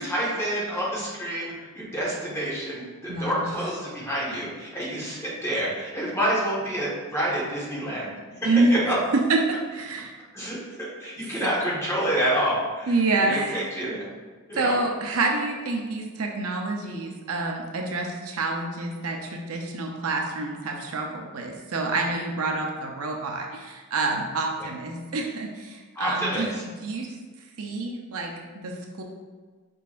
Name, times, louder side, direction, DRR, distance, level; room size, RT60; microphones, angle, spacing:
voice 1, 0.0-8.1 8.4-9.0 10.3-14.1 14.5-14.8 25.9-26.6, equal, 10° left, -7 dB, 1.3 m, -28 dB
voice 2, 3.1-3.5 8.4-8.7 9.3-10.1 12.9-13.7 14.6-26.5 26.8-27.1 27.6-28.3 28.6-29.0, right 3 dB, 70° right, 1 dB, 0.6 m, -27 dB
5.5 x 3.8 x 2.5 m, 1.4 s
head